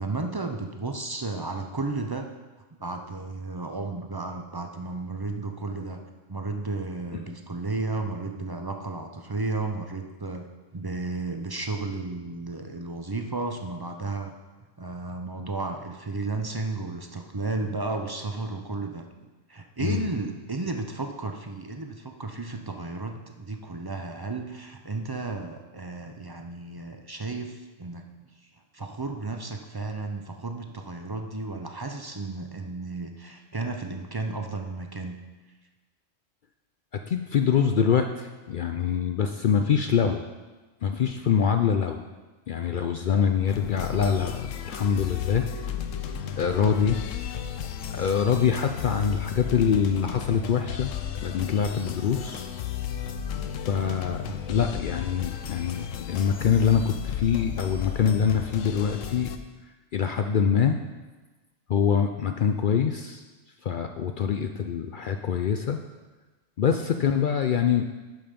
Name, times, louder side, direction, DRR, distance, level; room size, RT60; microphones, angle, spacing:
voice 1, 0.0-2.3 2.8-6.0 6.3-14.3 14.8-19.0 19.5-28.1 28.4-35.2 54.2-54.4, right 3 dB, 35° right, 4 dB, 0.4 m, -33 dB
voice 2, 37.1-40.2 40.8-42.0 42.5-45.5 46.4-47.0 47.9-50.9 51.2-52.5 53.7-54.2 54.5-59.3 59.9-60.8 61.7-63.2 63.6-65.8 66.6-67.9, left 7 dB, 65° left, 6 dB, 0.5 m, -24 dB
sound 1, 43.5-59.4, left 8 dB, 85° left, 1.0 m, -34 dB
11.5 x 5.5 x 5.2 m, 1.2 s
omnidirectional pair, 1.3 m